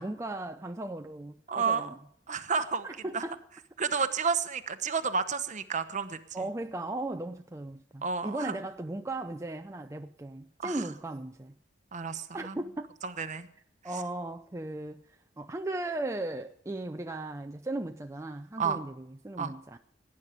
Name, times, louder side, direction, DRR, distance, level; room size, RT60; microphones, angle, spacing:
voice 1, 0.0-2.0 2.8-3.4 6.3-11.5 12.3-12.9 13.8-15.0 15.4-19.8, right 2 dB, 15° right, 0.5 m, -37 dB
voice 2, 1.5-1.9 2.3-2.9 3.1-3.2 3.8-6.5 8.0-8.5 10.6-10.9 11.9-12.6 13.0-13.5 18.6-18.8 19.4-19.5, right 5 dB, 40° right, 1.0 m, -31 dB
18.0 x 9.9 x 5.1 m
head